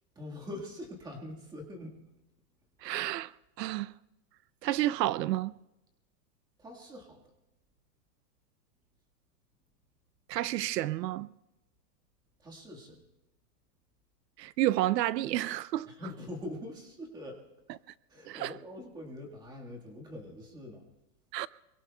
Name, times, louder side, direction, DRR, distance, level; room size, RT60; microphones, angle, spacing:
voice 1, 0.1-2.0 6.6-7.2 12.4-13.0 15.9-17.4 18.1-20.9, left 1 dB, 10° right, 1.5 m, -43 dB
voice 2, 2.8-3.3 3.6-3.9 4.6-5.5 10.3-11.3 14.4-15.9 18.3-18.5 21.3-21.5, right 14 dB, 80° right, 0.6 m, -30 dB
26.0 x 23.5 x 2.3 m
supercardioid pair, 175°, 49 cm